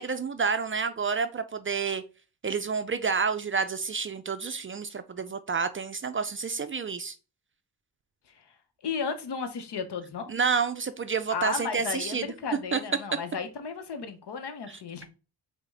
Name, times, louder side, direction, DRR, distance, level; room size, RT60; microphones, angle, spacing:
voice 1, 0.0-2.0 2.4-7.2 10.3-12.3 12.7-12.8 13.1-13.2 14.7-14.8, right 5 dB, 30° right, 0.4 m, -29 dB
voice 2, 8.8-10.3 11.3-15.1, left 5 dB, 65° left, 0.8 m, -34 dB
4.9 x 2.2 x 3.4 m
cardioid pair, 50°, 43 cm